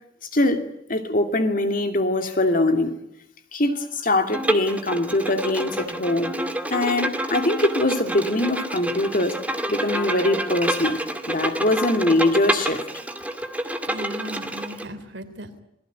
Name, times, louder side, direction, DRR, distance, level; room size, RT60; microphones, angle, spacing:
voice 1, 0.3-0.6 0.9-2.9 3.5-6.3 6.7-9.4 9.7-11.0 11.3-12.8, left 1 dB, 45° left, 2.5 m, -22 dB
Bowed string instrument, 4.3-14.8, right 1 dB, 10° right, 2.2 m, -28 dB
voice 2, 13.8-15.6, equal, 70° right, 3.4 m, -37 dB
27.5 x 19.5 x 9.3 m
head